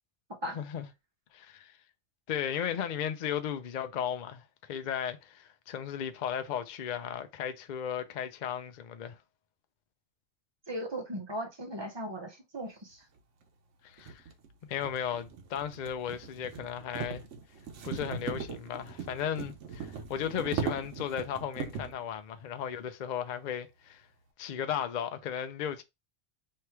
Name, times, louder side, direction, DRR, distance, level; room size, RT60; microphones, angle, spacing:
voice 1, 0.5-0.9 1.3-1.7 2.3-9.2 13.8-14.2 14.7-17.2 17.8-24.0 24.4-25.8, left 9 dB, 55° left, 0.5 m, -35 dB
voice 2, 10.7-13.0, right 1 dB, 25° right, 0.7 m, -37 dB
sound 1, 13.2-13.3 14.0-22.0, right 6 dB, 80° right, 1.0 m, -39 dB
3.2 x 2.8 x 4.5 m
omnidirectional pair, 1.2 m